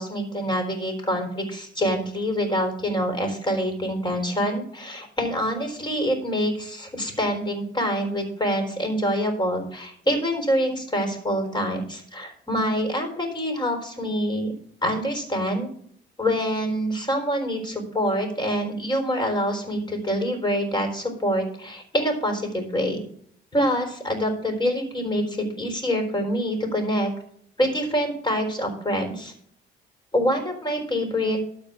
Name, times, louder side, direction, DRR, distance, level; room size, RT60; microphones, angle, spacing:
voice 1, 0.0-14.5 14.8-15.7 16.2-23.0 23.5-27.1 27.6-29.3 30.1-31.4, equal, 25° left, 3 dB, 4.0 m, -26 dB
12.5 x 4.4 x 8.5 m, 0.63 s
cardioid pair, 90°, 20 cm